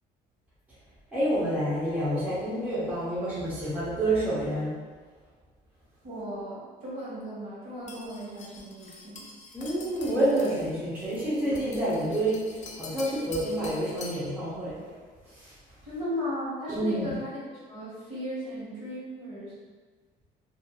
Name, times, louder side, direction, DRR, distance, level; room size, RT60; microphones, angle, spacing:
voice 1, 1.1-4.8 9.5-14.8 15.3-15.5 16.7-17.1, right 1 dB, 10° right, -11 dB, 0.8 m, -28 dB
voice 2, 6.0-9.3 15.8-19.5, equal, 40° right, -8 dB, 1.3 m, -36 dB
sound 1, 7.9-14.3, left 3 dB, 45° left, 0.4 m, -46 dB
2.6 x 2.6 x 2.3 m, 1.5 s
cardioid pair, 110°, 17 cm